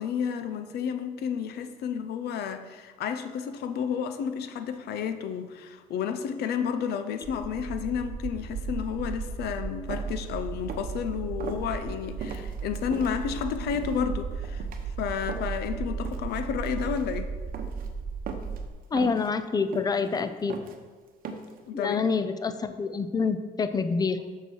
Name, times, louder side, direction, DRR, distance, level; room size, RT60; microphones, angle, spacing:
voice 1, 0.0-14.6 15.0-17.4 21.7-22.0, left 7 dB, 70° left, 10 dB, 0.7 m, -31 dB
sound 1, 7.2-18.7, right 5 dB, 35° right, 0.5 m, -35 dB
sound 2, 9.9-10.2 10.6-11.0 11.4-11.6 12.2-13.1 13.7-14.0 14.4-14.8 15.3-15.7 16.0-16.4 16.7-17.0 17.5-17.9 18.3-18.6 19.0-19.3 19.7-20.2 20.5-20.8 21.2-21.6, right 5 dB, 60° right, 0.9 m, -39 dB
voice 2, 18.9-20.6 21.7-24.2, left 4 dB, 25° left, 11 dB, 0.5 m, -27 dB
6.7 x 6.7 x 4.7 m, 1.4 s
cardioid pair, 110°, 17 cm